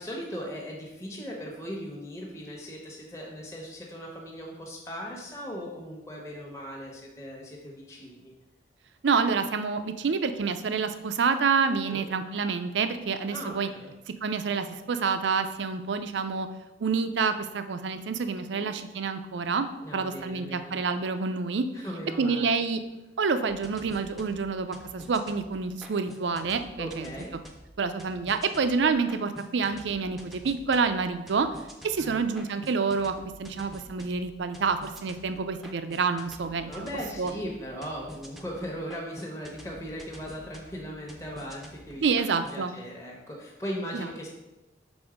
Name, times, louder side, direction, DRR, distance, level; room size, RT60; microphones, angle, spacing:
voice 1, 0.0-8.3 11.9-12.1 13.3-13.9 18.5-18.7 19.8-20.8 21.7-22.5 26.8-27.4 32.0-32.3 36.7-42.1 42.5-44.3, equal, 15° left, -2 dB, 1.0 m, -38 dB
voice 2, 9.0-13.7 14.2-16.5 16.8-19.7 19.9-21.7 22.2-22.8 23.2-27.1 27.8-31.5 31.8-36.9 37.2-37.3 42.0-42.7 43.9-44.1, right 5 dB, 85° right, 9 dB, 0.5 m, -28 dB
sound 1, 23.5-42.6, equal, ahead, 0.6 m, -48 dB
6.2 x 3.8 x 5.0 m, 1.0 s
head